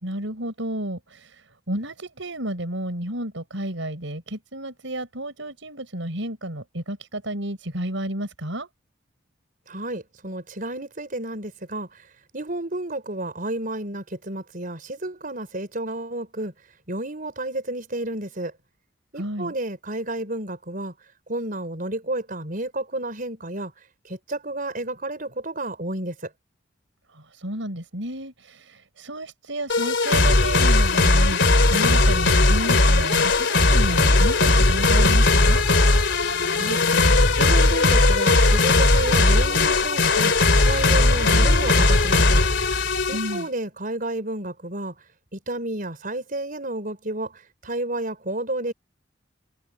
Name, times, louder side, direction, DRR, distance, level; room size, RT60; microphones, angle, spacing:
voice 1, 0.0-8.7 19.1-19.5 27.1-35.6 43.1-43.5, right 1 dB, 80° right, 5.0 m, -31 dB
voice 2, 9.7-16.5 16.9-18.5 19.1-20.9 21.3-23.7 24.0-26.3 36.5-36.8 37.4-42.4 43.1-44.9 45.3-48.7, right 1 dB, 45° right, 5.2 m, -31 dB
sound 1, 29.7-43.4, left 2 dB, 65° left, 3.1 m, -18 dB
head